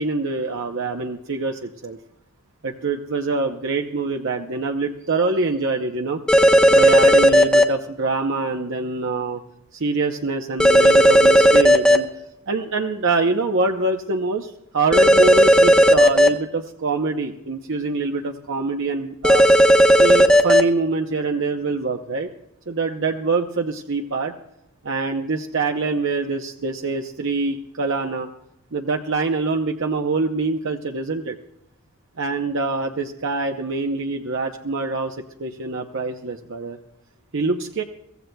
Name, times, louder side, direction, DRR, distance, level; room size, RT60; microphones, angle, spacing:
voice 1, 0.0-2.0 2.6-6.2 6.7-9.4 9.7-12.1 12.5-19.5 20.0-22.3 22.7-24.3 24.8-28.3 28.7-31.4 32.2-36.8 37.3-37.8, right 3 dB, 60° right, 4 dB, 0.8 m, -24 dB
sound 1, 6.3-7.6 10.6-12.0 14.9-16.3 19.2-20.6, equal, 5° left, 0.9 m, -13 dB
23.5 x 16.5 x 2.3 m, 0.83 s
head